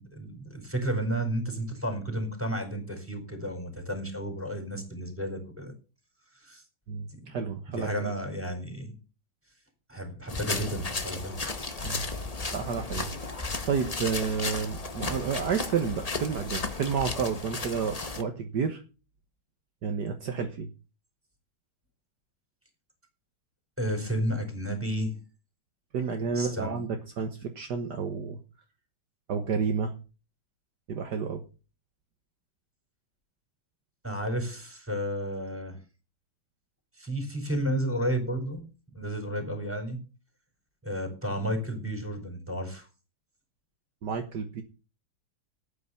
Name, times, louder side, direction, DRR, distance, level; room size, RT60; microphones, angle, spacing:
voice 1, 0.0-5.7 6.4-6.6 7.1-7.3 7.7-8.9 9.9-11.4 23.8-25.1 26.3-26.8 34.0-35.8 37.0-38.6 38.9-40.0 40.8-42.9, right 1 dB, 5° right, 4 dB, 4.6 m, -32 dB
voice 2, 6.9-8.1 11.8-12.1 12.5-13.1 13.4-18.8 19.8-20.7 25.9-28.4 29.3-29.9 30.9-31.4 44.0-44.6, right 6 dB, 60° right, 5 dB, 1.8 m, -30 dB
sound 1, 10.3-18.2, left 3 dB, 25° left, 1.1 m, -34 dB
12.0 x 9.2 x 5.8 m, 0.34 s
omnidirectional pair, 2.1 m